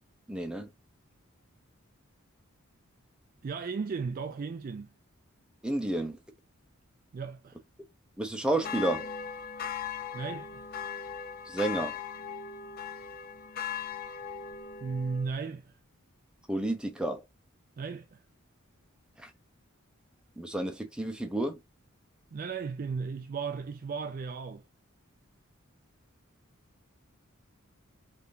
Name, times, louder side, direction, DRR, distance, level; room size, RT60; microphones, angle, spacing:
voice 1, 0.3-0.7 5.6-6.2 8.2-9.1 11.5-11.9 16.5-17.2 19.2-19.3 20.4-21.6, right 1 dB, 5° right, 0.7 m, -31 dB
voice 2, 3.4-4.9 7.1-7.6 10.1-10.7 14.8-15.8 17.8-18.2 22.3-24.6, right 5 dB, 40° right, 0.3 m, -35 dB
sound 1, 8.6-15.3, left 7 dB, 40° left, 0.4 m, -38 dB
3.5 x 3.4 x 2.6 m
head